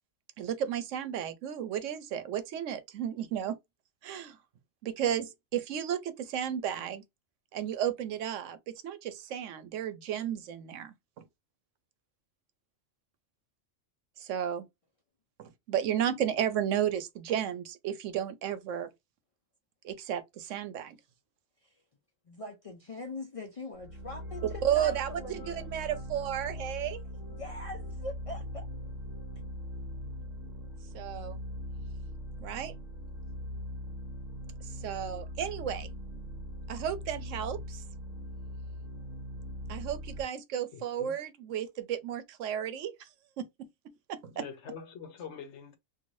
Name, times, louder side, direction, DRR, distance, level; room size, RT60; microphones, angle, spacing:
voice 1, 0.4-3.6 4.0-4.4 4.8-7.0 7.5-11.2 14.2-14.7 15.4-18.9 19.8-21.0 24.6-27.0 30.9-31.4 32.4-32.7 34.6-35.9 36.7-37.8 39.7-43.1 43.4-44.5, right 9 dB, 90° right, 0.9 m, -33 dB
voice 2, 22.3-25.7 26.5-26.6 27.1-28.7, left 2 dB, 50° left, 0.4 m, -42 dB
sound 1, 23.8-40.2, equal, 40° right, 1.0 m, -41 dB
voice 3, 40.7-41.1 44.3-45.8, left 7 dB, 70° left, 1.0 m, -44 dB
2.6 x 2.6 x 3.0 m
omnidirectional pair, 1.3 m